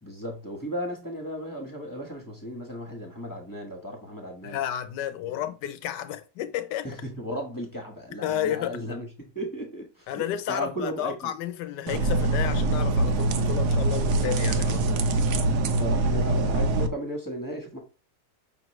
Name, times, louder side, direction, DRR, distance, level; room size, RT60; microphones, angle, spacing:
voice 1, 0.0-4.6 5.2-5.5 6.8-11.3 15.3-15.5 15.8-17.8, equal, 15° left, 0.8 m, -35 dB
voice 2, 4.4-6.9 8.2-8.8 10.1-15.0, left 11 dB, 80° left, 1.2 m, -32 dB
sound 1, 11.9-16.9, right 2 dB, 70° right, 1.1 m, -24 dB
5.7 x 3.0 x 3.0 m
omnidirectional pair, 1.9 m